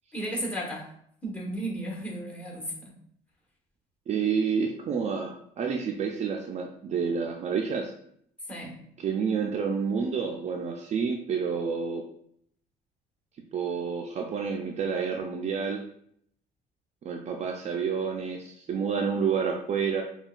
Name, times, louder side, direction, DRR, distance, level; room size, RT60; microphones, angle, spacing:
voice 1, 0.1-0.9 1.2-2.9 8.5-8.8, right 1 dB, 10° left, -3 dB, 1.3 m, -34 dB
voice 2, 4.1-7.9 9.0-12.0 13.5-15.8 17.0-20.0, right 6 dB, 40° right, 2 dB, 0.4 m, -29 dB
5.4 x 2.3 x 2.5 m, 0.67 s
cardioid pair, 110°, 17 cm